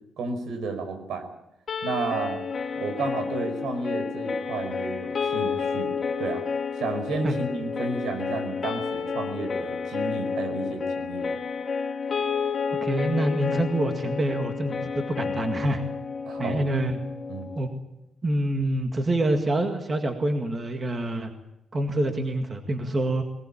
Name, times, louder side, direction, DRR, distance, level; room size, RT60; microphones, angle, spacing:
voice 1, 0.2-1.3 1.8-2.4 2.7-5.9 6.2-6.5 6.8-11.3 16.2-16.6 17.3-17.5, right 3 dB, 85° right, 8 dB, 5.0 m, -32 dB
sound 1, 1.7-17.7, left 5 dB, 35° left, 2.9 m, -30 dB
voice 2, 12.8-15.8 16.4-17.0 17.6-17.7 18.2-21.3 21.7-23.2, right 1 dB, 25° right, 5 dB, 1.9 m, -26 dB
20.5 x 20.0 x 8.7 m, 0.85 s
cardioid pair, 170°, 0 cm